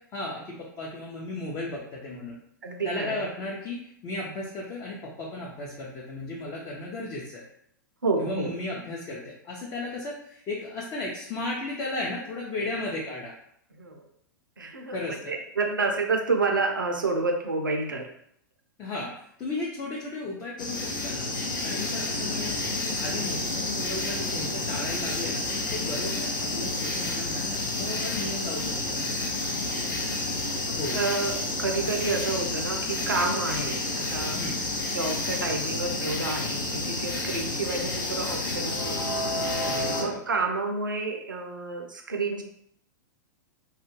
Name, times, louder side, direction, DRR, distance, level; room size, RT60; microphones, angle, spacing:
voice 1, 0.1-2.4 2.8-7.4 8.2-13.3 14.9-15.4 18.8-19.1 19.4-21.3 21.6-29.0 30.8-31.0 34.4-34.6 39.6-40.2, left 2 dB, 30° left, -4 dB, 0.6 m, -35 dB
voice 2, 2.6-3.2 8.0-8.5 13.7-14.0 14.6-18.1 29.4-29.6 30.7-34.4 34.9-39.2 40.0-42.4, right 3 dB, 85° right, 3 dB, 0.5 m, -29 dB
sound 1, 20.6-40.0, left 2 dB, 75° left, 0.6 m, -30 dB
2.4 x 2.2 x 3.1 m, 0.69 s
figure-of-eight pair, 105°, 11 cm